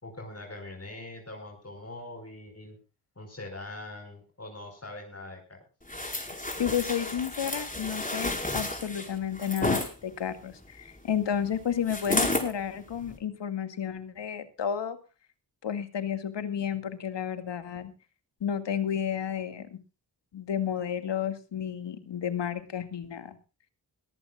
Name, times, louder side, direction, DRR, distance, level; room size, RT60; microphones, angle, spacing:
voice 1, 0.0-2.8 3.2-5.6, left 2 dB, 35° left, 4 dB, 5.2 m, -42 dB
sound 1, 5.9-9.9 11.9-12.5 13.0-13.2, left 1 dB, 20° left, 5.5 m, -31 dB
voice 2, 6.6-15.0 15.6-17.9 18.4-19.8 20.3-23.4, left 8 dB, 70° left, 9 dB, 2.2 m, -32 dB
22.0 x 14.5 x 2.5 m, 0.32 s
supercardioid pair, 40°, 44 cm